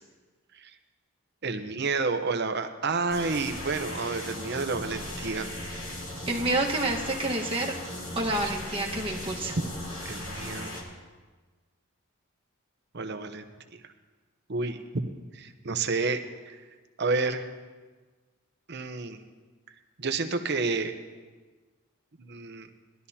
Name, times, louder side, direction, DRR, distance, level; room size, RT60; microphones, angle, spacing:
voice 1, 1.4-5.5 10.0-10.7 12.9-13.4 13.7-13.8 14.5-14.8 15.3-16.2 16.5-16.6 17.0-17.5 18.7-19.2 20.0-20.9 22.2-22.7, right 4 dB, 50° right, 7 dB, 0.9 m, -30 dB
sound 1, 3.1-10.8, left 1 dB, 70° left, 2.6 m, -37 dB
voice 2, 6.3-7.7 8.1-9.6, right 2 dB, 25° right, -2 dB, 1.4 m, -28 dB
20.0 x 12.5 x 2.8 m, 1.4 s
head